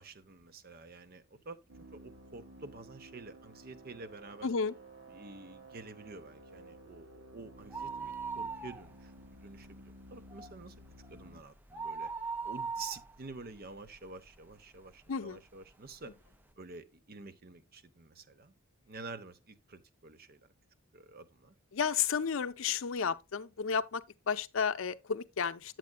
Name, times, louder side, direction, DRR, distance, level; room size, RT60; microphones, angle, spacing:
voice 1, 0.0-1.6 1.9-4.5 5.1-12.1 12.4-16.1 16.6-18.6 18.9-20.4 20.9-21.5, right 3 dB, 45° right, 0.8 m, -49 dB
sound 1, 1.7-11.4, right 1 dB, 60° right, 1.4 m, -54 dB
voice 2, 4.4-4.7 15.1-15.4 21.7-25.8, left 6 dB, 65° left, 0.5 m, -32 dB
sound 2, 7.6-9.2 9.6-9.7 10.1-14.5 15.0-15.1 15.9-16.0 16.2-16.3, right 4 dB, 10° right, 0.4 m, -40 dB
9.5 x 7.6 x 2.2 m
head